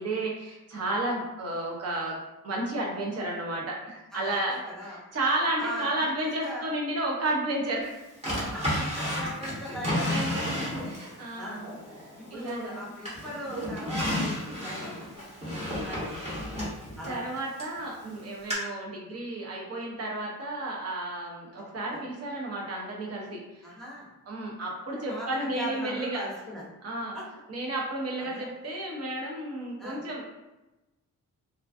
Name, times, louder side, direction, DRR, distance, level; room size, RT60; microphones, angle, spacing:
voice 1, 0.0-2.2 2.4-4.6 4.8-8.0 9.7-10.5 10.8-11.7 12.3-12.9 15.9-16.0 17.1-23.7 24.3-26.2 26.8-27.2 27.5-30.2, right 1 dB, 45° right, -2 dB, 0.7 m, -32 dB
voice 2, 4.1-5.0 5.6-6.7 8.5-11.0 11.4-11.7 12.2-16.6 17.0-17.2 21.9-22.0 23.6-24.1 25.1-26.6 27.1-27.2 28.3-28.5 29.8-30.0, equal, ahead, -7 dB, 0.6 m, -39 dB
Drawer open or close, 8.2-11.1 11.6-12.7 13.1-17.8 18.5-18.6, equal, 20° right, 0.9 m, -32 dB
2.4 x 2.2 x 2.4 m, 1.0 s
wide cardioid pair, 140°, 34 cm